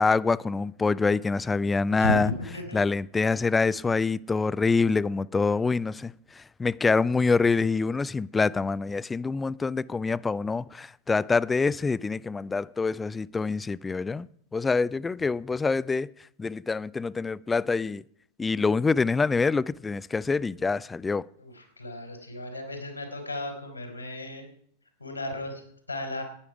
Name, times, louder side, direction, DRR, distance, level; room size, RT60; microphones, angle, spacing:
voice 1, 0.0-2.3 2.7-14.3 14.5-16.1 16.4-18.0 18.4-21.3, left 4 dB, 15° left, 0.4 m, -25 dB
voice 2, 2.0-2.8 21.4-24.5 25.0-26.2, left 1 dB, 85° left, 3.9 m, -34 dB
16.0 x 9.8 x 4.9 m
figure-of-eight pair, 90°, 0 cm